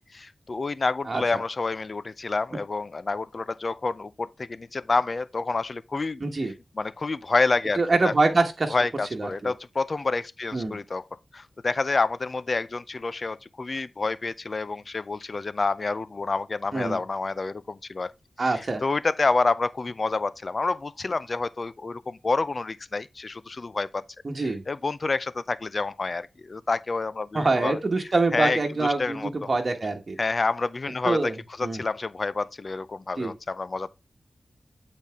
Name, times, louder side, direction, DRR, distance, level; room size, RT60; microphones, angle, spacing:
voice 1, 0.1-6.2 6.8-8.1 8.7-11.0 11.3-18.1 18.4-24.0 24.4-27.8 28.3-29.3 30.2-31.3 31.6-33.9, left 3 dB, 50° left, 0.4 m, -28 dB
voice 2, 1.1-1.4 6.2-6.5 7.7-8.7 9.1-9.5 10.5-10.8 16.7-17.0 18.4-18.8 24.2-24.6 27.3-30.2 31.0-31.4 31.6-31.8 33.2-33.3, right 3 dB, 45° right, 1.3 m, -25 dB
8.2 x 4.2 x 3.5 m
wide cardioid pair, 75°, 0 cm